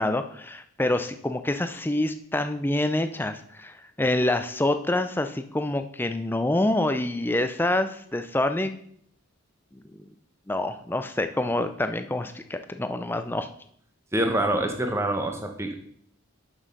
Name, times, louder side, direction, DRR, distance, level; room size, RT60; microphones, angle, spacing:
voice 1, 0.0-8.7 9.7-10.0 10.5-13.5, left 1 dB, 10° left, 8 dB, 0.4 m, -26 dB
voice 2, 14.1-15.7, right 1 dB, 10° right, 4 dB, 0.9 m, -25 dB
6.4 x 6.2 x 5.3 m, 0.65 s
head